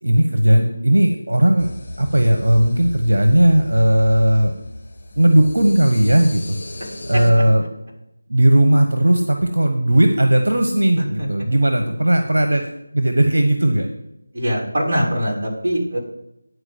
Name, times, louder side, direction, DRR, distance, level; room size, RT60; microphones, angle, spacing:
voice 1, 0.0-1.7 2.0-4.5 5.2-6.6 7.1-7.6 8.3-12.6 12.9-13.9, right 1 dB, 85° right, 5 dB, 1.2 m, -16 dB
sound 1, 1.6-7.3, left 1 dB, 35° left, 2.0 m, -36 dB
voice 2, 10.9-11.3 14.3-16.0, equal, 40° right, -3 dB, 3.2 m, -22 dB
9.7 x 4.9 x 8.0 m, 0.84 s
figure-of-eight pair, 170°, 0 cm